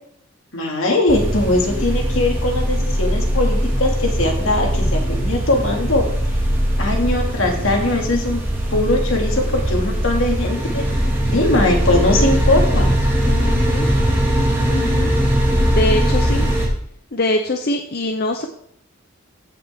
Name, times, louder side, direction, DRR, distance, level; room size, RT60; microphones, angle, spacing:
voice 1, 0.5-6.0 6.8-8.4 8.7-10.8 11.3-12.9, left 2 dB, 75° left, 1 dB, 2.2 m, -20 dB
sound 1, 1.1-16.7, equal, 10° right, 2.1 m, -20 dB
voice 2, 13.3-13.9 14.7-15.1 15.7-16.5 17.1-18.5, left 1 dB, 50° left, 4 dB, 0.7 m, -23 dB
15.0 x 5.8 x 3.6 m, 0.68 s
head